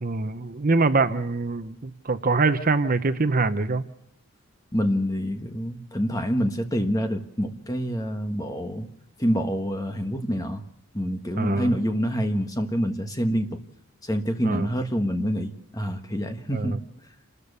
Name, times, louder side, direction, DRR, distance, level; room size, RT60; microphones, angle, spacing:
voice 1, 0.0-3.9 11.4-11.7 14.4-14.7 16.5-16.8, right 3 dB, 40° right, 10 dB, 0.8 m, -24 dB
voice 2, 4.7-8.9 9.2-10.6 10.9-13.6 14.0-16.8, equal, 15° left, 6 dB, 1.5 m, -26 dB
28.0 x 13.5 x 6.9 m, 0.75 s
head